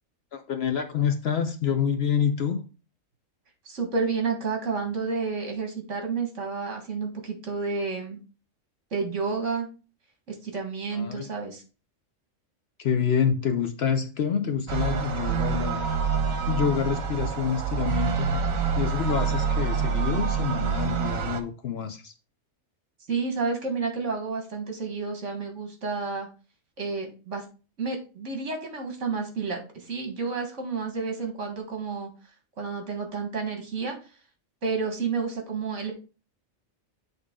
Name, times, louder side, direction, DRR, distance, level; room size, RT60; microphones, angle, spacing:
voice 1, 0.3-2.6 10.9-11.3 12.8-15.9 16.5-18.4 18.7-22.1, left 7 dB, 60° left, 0.8 m, -27 dB
voice 2, 3.7-8.2 8.9-9.7 10.3-11.6 23.1-26.3 26.8-27.4 27.8-32.1 32.6-34.0 34.6-35.9, right 4 dB, 65° right, 1.8 m, -30 dB
sound 1, 14.7-21.4, right 6 dB, 85° right, 1.2 m, -27 dB
8.0 x 3.6 x 3.6 m
omnidirectional pair, 1.4 m